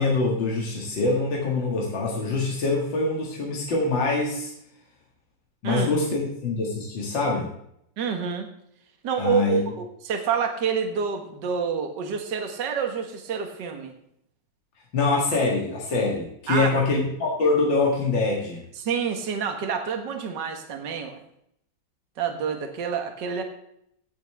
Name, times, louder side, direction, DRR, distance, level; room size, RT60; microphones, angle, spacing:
voice 1, 0.0-4.5 5.6-7.5 9.2-9.6 14.9-18.6, left 3 dB, 70° left, -2 dB, 2.7 m, -24 dB
voice 2, 8.0-8.5 9.0-13.9 16.5-16.7 18.8-21.2 22.2-23.4, right 6 dB, 65° right, 5 dB, 2.0 m, -28 dB
17.0 x 7.4 x 3.4 m, 0.72 s
omnidirectional pair, 2.1 m